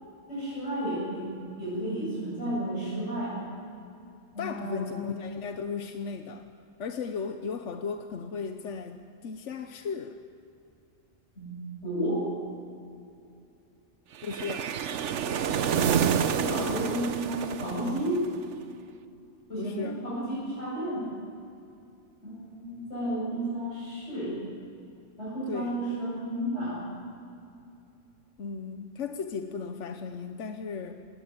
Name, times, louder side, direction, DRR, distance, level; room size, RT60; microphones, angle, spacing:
voice 1, 0.3-1.3 1.6-3.4 4.3-4.9 11.4-12.2 16.3-18.2 19.5-21.1 22.2-24.4 25.2-26.8, right 1 dB, 70° left, 8.2 m, -32 dB
voice 2, 4.4-6.5 6.8-10.2 14.2-14.8 19.6-20.1 25.5-25.8 28.4-31.0, left 5 dB, 85° left, 1.2 m, -36 dB
sound 1, 14.2-18.5, right 8 dB, 80° right, 1.1 m, -28 dB
20.5 x 17.5 x 9.0 m
omnidirectional pair, 1.2 m